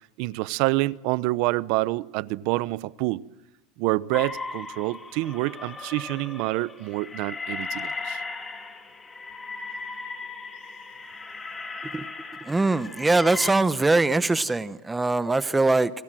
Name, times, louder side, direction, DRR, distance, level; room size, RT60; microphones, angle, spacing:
voice 1, 0.2-3.2 3.8-8.2, right 20 dB, 60° right, 0.8 m, -27 dB
sound 1, 4.1-13.5, left 4 dB, 15° left, 3.7 m, -37 dB
voice 2, 12.4-15.9, right 3 dB, 10° right, 0.9 m, -22 dB
28.5 x 24.5 x 7.7 m
supercardioid pair, 135°, 0 cm